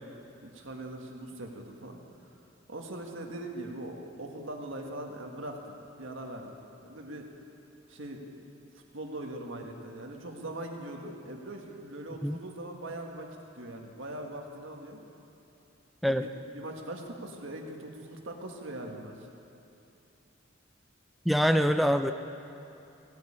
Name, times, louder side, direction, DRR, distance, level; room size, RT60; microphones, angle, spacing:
voice 1, 0.4-2.0 2.7-6.6 6.8-7.3 7.9-8.4 8.9-13.3 13.6-15.0 16.1-19.3, right 1 dB, 65° right, 1 dB, 1.7 m, -41 dB
voice 2, 21.3-22.1, equal, ahead, 7 dB, 0.3 m, -24 dB
16.5 x 9.7 x 8.6 m, 2.8 s
head